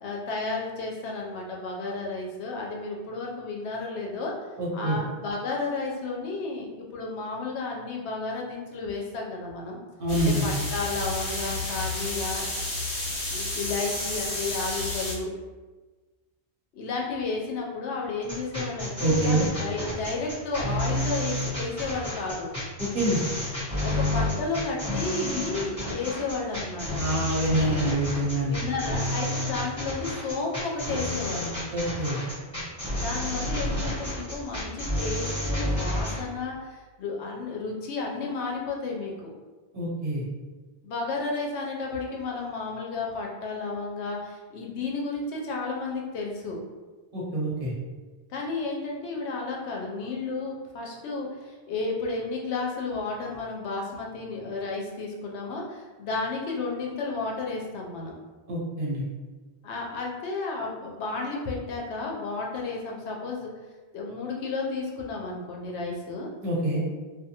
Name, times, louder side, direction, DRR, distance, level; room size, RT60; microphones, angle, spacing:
voice 1, 0.0-4.3 4.7-9.8 10.3-12.6 13.3-15.3 16.7-22.5 23.8-27.0 28.5-31.5 33.0-39.1 40.8-46.6 48.3-58.1 59.6-63.5 63.9-66.3, left 3 dB, 80° left, -1 dB, 0.9 m, -32 dB
voice 2, 4.6-5.0 10.0-10.4 19.0-19.4 22.8-23.2 27.0-28.6 31.7-32.2 39.7-40.2 47.1-47.7 58.5-59.0 66.4-66.8, right 1 dB, 55° right, -6 dB, 0.9 m, -26 dB
sound 1, 10.1-15.1, left 2 dB, 55° left, 1.1 m, -31 dB
sound 2, 18.2-36.2, left 1 dB, 5° left, 1.4 m, -30 dB
2.4 x 2.2 x 2.8 m, 1.3 s
omnidirectional pair, 1.1 m